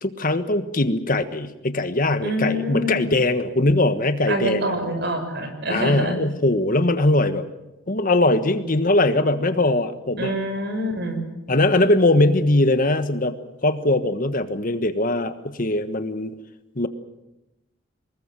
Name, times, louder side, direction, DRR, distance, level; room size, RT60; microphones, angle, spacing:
voice 1, 0.0-4.7 5.7-7.5 7.9-10.3 11.5-16.3 16.8-16.9, left 2 dB, 45° left, 10 dB, 1.4 m, -21 dB
voice 2, 2.2-3.0 4.3-6.2 10.2-11.2, equal, 60° right, 6 dB, 6.0 m, -26 dB
25.0 x 21.0 x 7.6 m, 0.95 s
head